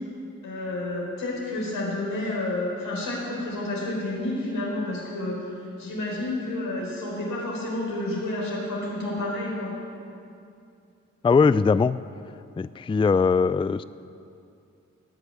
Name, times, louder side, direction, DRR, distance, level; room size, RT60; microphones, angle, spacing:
voice 1, 0.4-9.7, left 2 dB, 90° left, -3 dB, 4.0 m, -30 dB
voice 2, 11.2-12.0 12.6-13.8, left 5 dB, 15° left, 16 dB, 0.4 m, -20 dB
17.5 x 6.1 x 9.3 m, 2.5 s
supercardioid pair, 40°, 32 cm